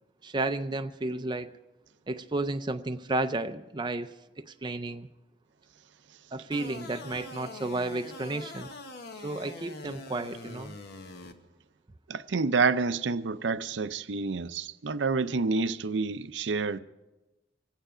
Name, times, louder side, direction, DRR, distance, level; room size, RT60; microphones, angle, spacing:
voice 1, 0.2-1.6 2.1-4.2 4.5-5.1 6.3-8.7 9.2-10.7, right 2 dB, 25° right, 0.5 m, -32 dB
sound 1, 6.5-11.3, left 3 dB, 60° left, 1.3 m, -44 dB
voice 2, 12.1-16.8, right 4 dB, 80° right, 0.6 m, -28 dB
25.0 x 9.0 x 5.0 m
head